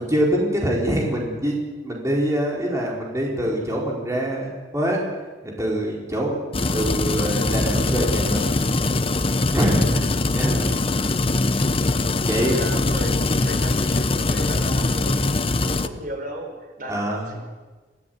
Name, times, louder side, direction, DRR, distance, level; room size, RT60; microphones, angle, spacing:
voice 1, 0.0-1.6 1.8-5.0 5.4-8.5 9.5-10.1 10.3-10.7 12.2-12.6 16.9-17.3, equal, 15° right, -2 dB, 4.7 m, -24 dB
sound 1, 6.5-15.9, left 2 dB, 30° left, 1.0 m, -22 dB
voice 2, 12.3-15.4 15.7-17.4, right 1 dB, 50° right, 3 dB, 4.8 m, -35 dB
26.5 x 17.0 x 9.4 m, 1.3 s
head